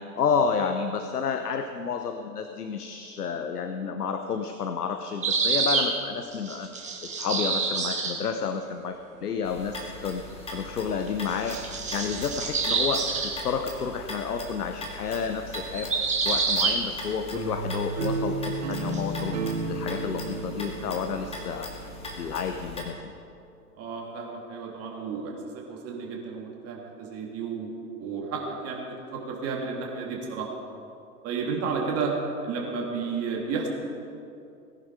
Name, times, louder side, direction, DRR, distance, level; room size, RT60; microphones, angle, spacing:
voice 1, 0.0-6.7 7.0-10.2 10.5-15.9 16.2-21.7 22.2-23.0, left 6 dB, 75° left, 7 dB, 0.9 m, -30 dB
sound 1, 5.2-5.9 6.3-8.2 11.1-13.3 15.5-16.8 18.7-19.0, right 4 dB, 15° right, 2.0 m, -27 dB
sound 2, 9.4-22.8, left 1 dB, 10° left, 2.0 m, -40 dB
sound 3, 17.3-22.2, right 3 dB, 55° right, 1.9 m, -32 dB
voice 2, 23.8-27.7 28.0-30.5 31.2-32.1 32.4-33.7, right 5 dB, 30° right, -1 dB, 3.0 m, -32 dB
18.0 x 10.5 x 4.8 m, 2.6 s
figure-of-eight pair, 105°, 46 cm